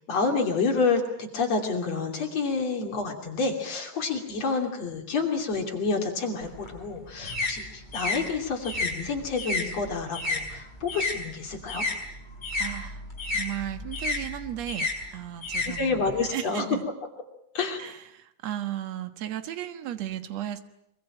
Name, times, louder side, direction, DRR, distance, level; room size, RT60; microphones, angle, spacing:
voice 1, 0.1-11.9 15.7-16.7 17.5-17.8, left 4 dB, 50° left, 2 dB, 4.0 m, -28 dB
sound 1, 6.4-11.2 11.5-16.3, left 3 dB, 10° left, 5.5 m, -32 dB
voice 2, 12.6-13.1 13.3-16.0 16.3-16.9 17.8-20.6, right 12 dB, 60° right, 9 dB, 2.4 m, -35 dB
24.5 x 23.5 x 8.8 m, 0.81 s
omnidirectional pair, 3.8 m